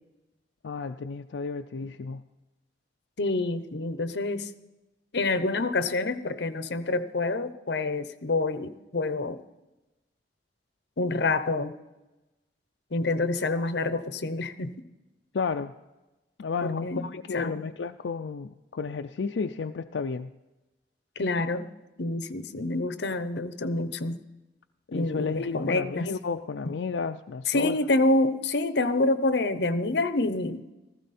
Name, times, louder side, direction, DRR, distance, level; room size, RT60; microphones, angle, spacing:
voice 1, 0.6-2.2 15.3-15.7 16.4-20.3 24.9-27.8, left 5 dB, 85° left, 6 dB, 0.5 m, -32 dB
voice 2, 3.2-4.5 5.1-9.4 11.0-11.7 12.9-14.7 16.6-17.6 21.2-21.7 22.0-24.2 24.9-26.1 26.6-26.7 27.5-30.6, left 2 dB, 70° left, 12 dB, 0.8 m, -27 dB
15.5 x 14.5 x 4.2 m, 1.0 s
head